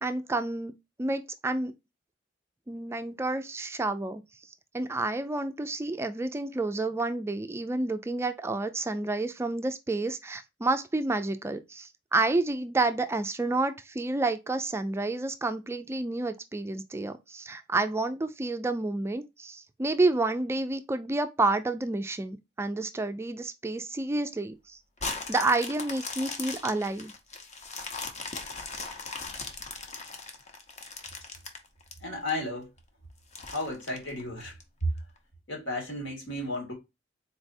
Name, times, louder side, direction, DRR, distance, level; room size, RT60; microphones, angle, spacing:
voice 1, 0.0-0.7 1.0-1.7 2.7-4.2 4.7-24.8 25.1-27.1, right 2 dB, 15° right, 0.3 m, -29 dB
sound 1, 25.0-32.3 32.8-32.9 33.3-34.6 35.2-35.3, left 4 dB, 35° left, 0.7 m, -38 dB
voice 2, 32.0-32.7 33.5-34.5 34.8-34.9 35.5-36.7, left 1 dB, 85° left, 1.8 m, -33 dB
4.0 x 3.2 x 2.6 m
head